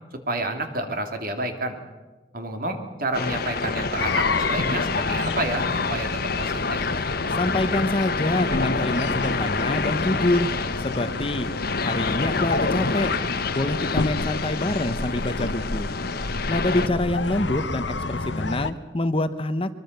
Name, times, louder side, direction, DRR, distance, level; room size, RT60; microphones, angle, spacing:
voice 1, 0.3-1.8 2.3-6.1 6.4-6.8, right 2 dB, 50° right, 5 dB, 2.9 m, -29 dB
sound 1, 3.1-16.9, left 4 dB, 55° left, 1.3 m, -28 dB
sound 2, 4.0-18.7, left 3 dB, 70° left, 1.0 m, -30 dB
voice 2, 7.3-10.5 10.8-11.5 11.8-13.1 13.5-15.9 16.5-19.8, left 1 dB, 30° left, 11 dB, 0.9 m, -26 dB
24.0 x 23.0 x 6.8 m, 1.2 s
head